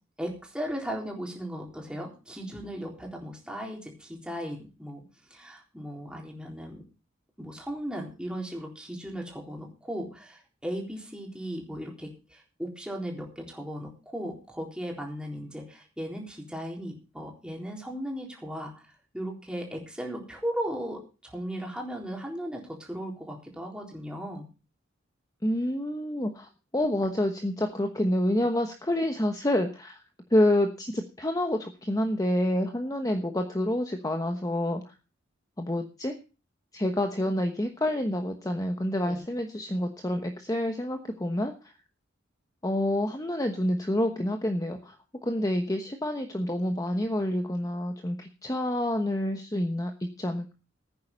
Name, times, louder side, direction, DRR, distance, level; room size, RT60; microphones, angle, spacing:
voice 1, 0.2-5.0 5.3-6.8 7.4-18.7 19.1-24.5 39.0-39.2, equal, 5° right, 0 dB, 3.9 m, -37 dB
voice 2, 25.4-30.0 30.3-34.8 35.6-36.1 36.7-41.5 42.6-44.9 45.2-50.5, left 1 dB, 20° left, 5 dB, 1.1 m, -28 dB
15.5 x 9.6 x 5.3 m, 0.33 s
head